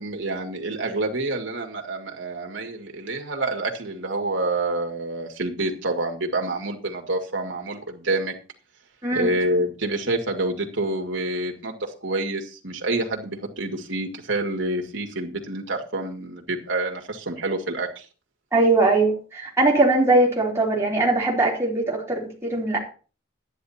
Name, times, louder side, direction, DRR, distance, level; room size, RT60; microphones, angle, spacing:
voice 1, 0.0-8.3 9.1-18.0, right 2 dB, 75° right, 2 dB, 2.2 m, -27 dB
voice 2, 18.5-22.8, right 2 dB, 15° right, -3 dB, 3.6 m, -21 dB
11.0 x 10.5 x 4.3 m, 0.36 s
head